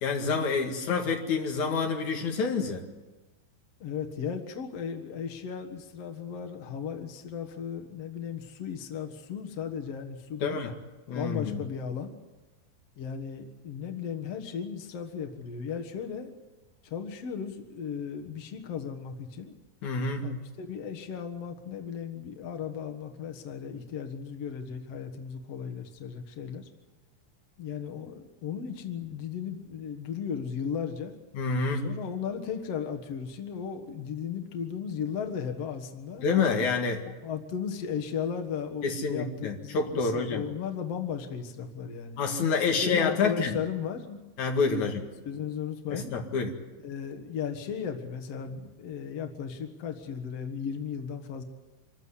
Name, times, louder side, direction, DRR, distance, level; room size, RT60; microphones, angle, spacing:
voice 1, 0.0-2.8 10.4-10.7 11.1-11.6 19.8-20.3 31.3-31.9 36.2-37.0 38.8-40.4 42.2-43.6 44.4-45.1 45.9-46.5, left 5 dB, 50° left, 3 dB, 2.7 m, -28 dB
voice 2, 3.8-10.6 11.1-12.1 13.0-16.3 16.8-19.6 20.2-26.7 27.6-31.1 31.7-36.3 37.2-42.2 42.8-44.2 44.7-46.1 46.8-51.4, left 7 dB, 85° left, 4 dB, 1.3 m, -36 dB
26.0 x 14.5 x 9.9 m, 1.1 s
omnidirectional pair, 5.5 m